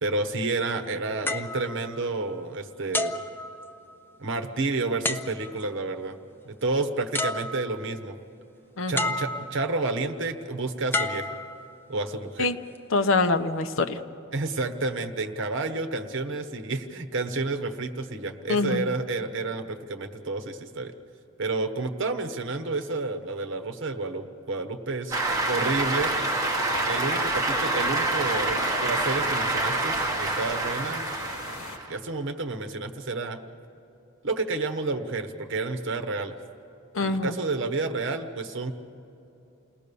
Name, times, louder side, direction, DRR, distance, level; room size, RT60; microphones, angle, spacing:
voice 1, 0.0-3.2 4.2-6.2 6.4-8.2 8.9-11.3 11.9-12.5 14.3-20.9 21.4-25.2 25.5-26.1 26.8-31.0 31.9-33.4 34.2-36.3 37.0-38.7, right 3 dB, 60° right, 6 dB, 1.2 m, -30 dB
sound 1, 1.3-2.5 2.9-4.1 5.0-5.7 6.8-6.9 7.1-8.0 9.0-9.8 10.9-12.0 12.7-13.0, left 2 dB, 10° left, 0.6 m, -31 dB
voice 2, 12.9-14.0 18.5-18.8 36.9-37.4, left 3 dB, 65° left, 9 dB, 0.8 m, -24 dB
Cheering / Applause, 25.1-32.0, right 2 dB, 15° right, 1.6 m, -27 dB
sound 2, 25.3-31.8, left 3 dB, 90° left, 1.6 m, -41 dB
29.0 x 19.0 x 6.9 m, 2.9 s
head